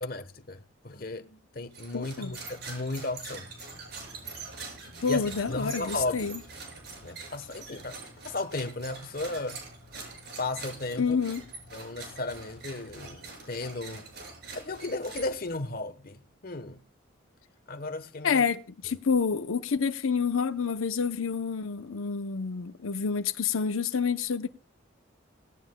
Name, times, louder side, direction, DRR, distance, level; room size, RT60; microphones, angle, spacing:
voice 1, 0.0-3.5 5.0-5.2 5.5-6.3 7.0-9.6 10.4-11.2 11.7-14.1 14.5-16.8 17.7-18.4, left 2 dB, 45° left, 1.1 m, -35 dB
sound 1, 1.7-15.7, right 3 dB, 50° right, 6.5 m, -44 dB
voice 2, 1.9-2.3 5.0-6.4 11.0-11.4 18.2-24.5, left 5 dB, 90° left, 0.7 m, -28 dB
18.0 x 17.5 x 2.2 m
head